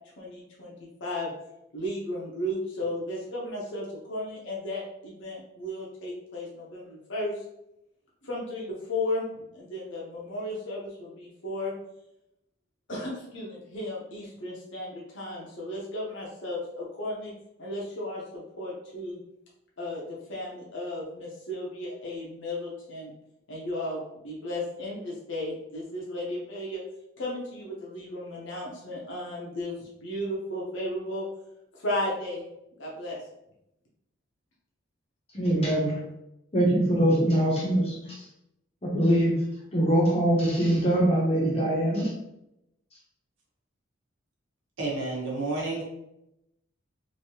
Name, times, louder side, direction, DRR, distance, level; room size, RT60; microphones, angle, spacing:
voice 1, 0.2-0.7 1.0-1.3 1.7-7.4 8.2-9.3 9.5-11.7 12.9-17.3 17.6-19.2 19.8-23.1 23.5-26.8 27.2-31.2 31.7-32.4 32.8-33.2, left 1 dB, 65° left, -5 dB, 0.8 m, -34 dB
voice 2, 35.3-36.0 36.5-38.2 38.8-39.4 39.7-42.1, right 1 dB, 30° left, -4 dB, 0.8 m, -23 dB
voice 3, 44.8-45.8, right 2 dB, 70° right, -3 dB, 1.0 m, -30 dB
3.2 x 2.8 x 2.8 m, 0.83 s
head